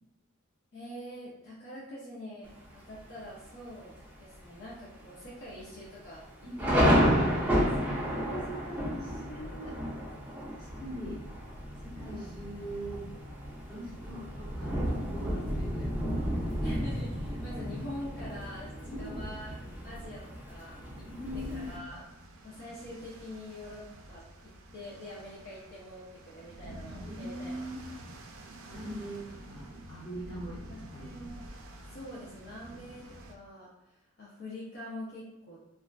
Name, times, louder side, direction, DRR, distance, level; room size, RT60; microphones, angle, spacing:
voice 1, 0.7-7.0 7.3-7.7 16.6-18.7 19.0-19.5 19.8-21.1 21.3-22.1 22.4-27.7 30.3-30.4 30.7-31.4 31.9-35.6, left 1 dB, 50° left, -8 dB, 0.6 m, -45 dB
Thunder, 2.5-3.0 3.5-3.6 3.9-4.4 4.7-4.8 5.5-21.8, equal, 10° right, 0.5 m, -32 dB
voice 2, 6.4-7.1 7.9-9.8 10.5-11.2 11.8-13.0 13.7-15.9 18.9-19.2 21.0-21.7 27.0-27.7 28.7-30.6 30.9-31.1, equal, 25° left, -9 dB, 1.2 m, -41 dB
sound 1, 21.1-33.3, right 1 dB, 70° right, 0.4 m, -48 dB
2.4 x 2.3 x 2.2 m, 0.95 s
head